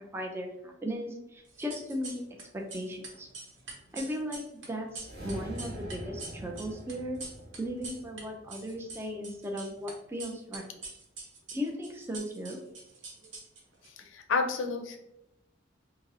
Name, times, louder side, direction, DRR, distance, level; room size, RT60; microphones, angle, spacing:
voice 1, 0.0-2.2 2.5-3.3 3.9-7.2 7.6-10.7 11.5-12.6, equal, 15° right, 1 dB, 0.4 m, -37 dB
sound 1, 1.5-2.4 2.7-8.2 8.5-9.9 10.2-13.9, right 3 dB, 70° right, 1.0 m, -44 dB
sound 2, 4.9-9.3, equal, 35° right, 1.1 m, -44 dB
voice 2, 14.1-15.0, left 4 dB, 90° left, 5 dB, 0.5 m, -29 dB
4.9 x 2.0 x 2.7 m, 0.82 s
head